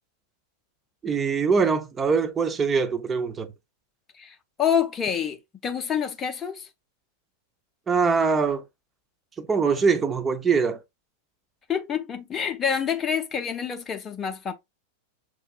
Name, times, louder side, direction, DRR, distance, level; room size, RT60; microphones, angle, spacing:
voice 1, 1.0-3.5 7.9-8.6 9.4-10.8, right 5 dB, 20° right, 0.6 m, -23 dB
voice 2, 4.2-6.7 11.7-14.5, left 8 dB, 20° left, 0.7 m, -27 dB
6.1 x 2.6 x 2.4 m
figure-of-eight pair, 90°, 0 cm